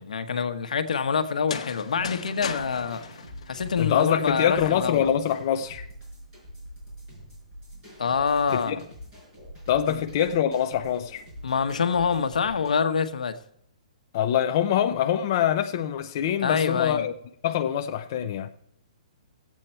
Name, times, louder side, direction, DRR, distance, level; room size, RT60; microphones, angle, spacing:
voice 1, 0.0-3.0 3.5-5.1 8.0-8.8 9.9-10.0 11.4-13.4 16.4-17.1, left 6 dB, 85° left, 1.1 m, -26 dB
sound 1, 1.3-4.2, left 7 dB, 55° left, 1.0 m, -37 dB
sound 2, 2.0-7.6, right 4 dB, 65° right, 2.1 m, -49 dB
sound 3, 2.7-12.7, equal, 15° right, 5.8 m, -45 dB
voice 2, 3.8-5.9 8.5-8.8 9.7-11.2 14.1-17.1 17.4-18.5, left 9 dB, 25° left, 0.4 m, -24 dB
15.5 x 8.3 x 4.4 m
hypercardioid pair, 180°, 4 cm